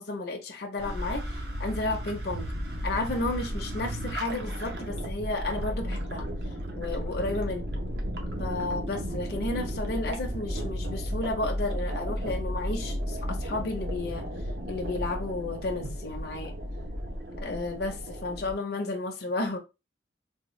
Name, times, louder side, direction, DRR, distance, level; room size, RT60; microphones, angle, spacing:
voice 1, 0.0-2.5 2.8-7.6 8.4-14.3 14.7-16.5 17.4-19.6, left 2 dB, 55° left, 0.6 m, -32 dB
sound 1, 0.8-18.5, equal, 60° right, 0.8 m, -34 dB
3.5 x 2.2 x 3.1 m
head